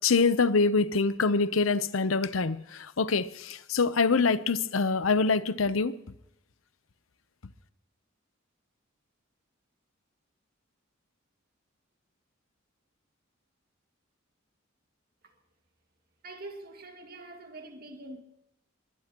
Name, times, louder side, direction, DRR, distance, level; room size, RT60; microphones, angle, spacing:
voice 1, 0.0-5.9, left 4 dB, 85° left, 0.8 m, -25 dB
voice 2, 16.2-18.2, right 2 dB, 50° right, 2.1 m, -44 dB
22.5 x 19.5 x 3.0 m
head